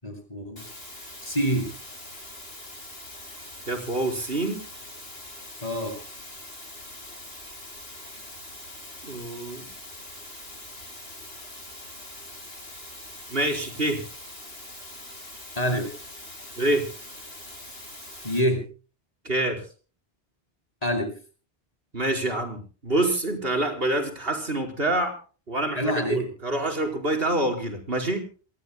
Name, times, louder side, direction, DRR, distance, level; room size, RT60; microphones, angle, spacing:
voice 1, 0.0-0.6 1.2-1.7 5.6-6.0 15.6-15.9 18.2-18.6 20.8-21.1 25.8-26.3, equal, 40° left, 4 dB, 8.2 m, -26 dB
sound 1, 0.6-18.4, left 1 dB, 75° left, 6.1 m, -43 dB
voice 2, 3.7-4.6 9.0-9.7 13.3-14.0 16.6-16.9 19.2-19.6 21.9-25.2 25.5-28.2, right 1 dB, 65° right, 3 dB, 5.0 m, -26 dB
28.5 x 20.0 x 2.2 m, 0.39 s
omnidirectional pair, 1.0 m